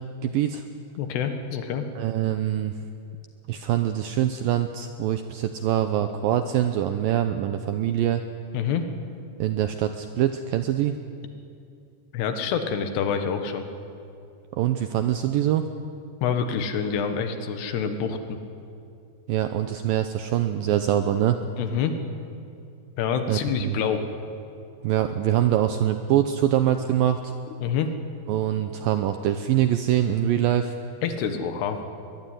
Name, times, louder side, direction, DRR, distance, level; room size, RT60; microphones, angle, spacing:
voice 1, 0.2-0.6 2.0-2.7 3.5-8.2 9.4-11.0 14.5-15.7 19.3-21.5 23.3-23.8 24.8-27.3 28.3-30.7, right 11 dB, 80° right, 8 dB, 2.1 m, -24 dB
voice 2, 1.0-1.9 8.5-8.8 12.1-13.7 16.2-18.4 21.6-22.0 23.0-24.0 27.6-27.9 31.0-31.8, left 7 dB, 75° left, 7 dB, 3.5 m, -27 dB
22.0 x 21.5 x 9.3 m, 2.5 s
omnidirectional pair, 5.0 m